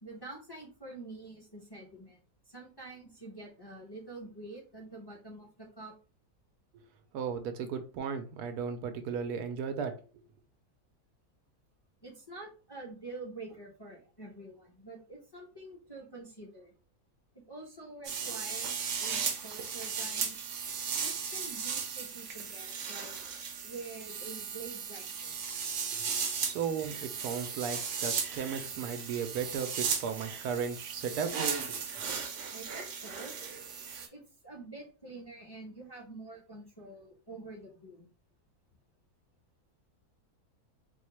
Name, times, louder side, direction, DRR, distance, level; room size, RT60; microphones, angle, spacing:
voice 1, 0.0-5.9 12.0-16.7 17.5-20.4 21.0-23.2 23.6-25.4 32.5-33.3 34.1-38.1, right 2 dB, 20° left, -2 dB, 0.7 m, -47 dB
voice 2, 7.1-10.0 25.9-26.0 26.4-31.4 31.7-31.8, right 6 dB, 90° right, 7 dB, 1.2 m, -35 dB
sound 1, 18.0-34.1, right 6 dB, 60° right, 0.9 m, -36 dB
4.1 x 2.3 x 3.1 m, 0.36 s
omnidirectional pair, 1.6 m